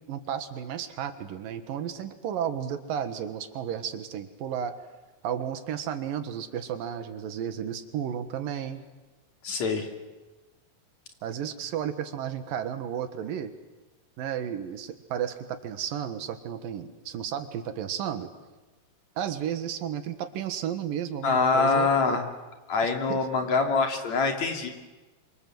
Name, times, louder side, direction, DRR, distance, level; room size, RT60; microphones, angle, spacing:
voice 1, 0.1-4.7 5.2-8.8 11.2-13.5 14.2-18.3 19.2-22.2 23.1-23.2, right 9 dB, 85° right, 10 dB, 3.3 m, -33 dB
voice 2, 9.4-9.9 21.2-22.2 22.7-24.7, left 4 dB, 55° left, 4 dB, 4.0 m, -24 dB
27.0 x 25.5 x 7.9 m, 1.2 s
omnidirectional pair, 3.9 m